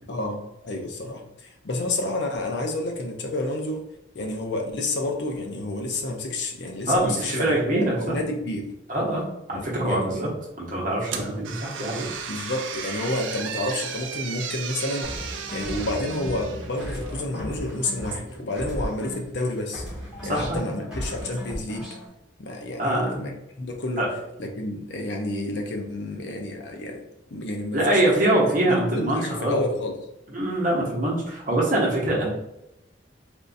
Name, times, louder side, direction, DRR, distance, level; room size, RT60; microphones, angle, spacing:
voice 1, 0.1-3.8 4.1-7.4 7.7-8.7 9.5-10.2 12.3-19.8 20.2-21.9 22.4-23.3 23.6-24.1 24.4-27.0 27.3-28.2 28.6-29.9, left 2 dB, 60° left, 2 dB, 0.6 m, -30 dB
voice 2, 6.9-8.2 8.9-9.2 9.5-10.3 10.6-12.1 20.3-20.7 22.8-23.3 24.0-24.1 27.7-29.6 30.3-32.3, right 1 dB, 40° right, -3 dB, 0.9 m, -24 dB
sound 1, 11.1-17.2, right 6 dB, 70° right, 0.4 m, -35 dB
sound 2, 15.0-19.4 19.7-22.1, equal, 5° right, 1.1 m, -35 dB
3.5 x 2.6 x 2.5 m, 0.87 s
head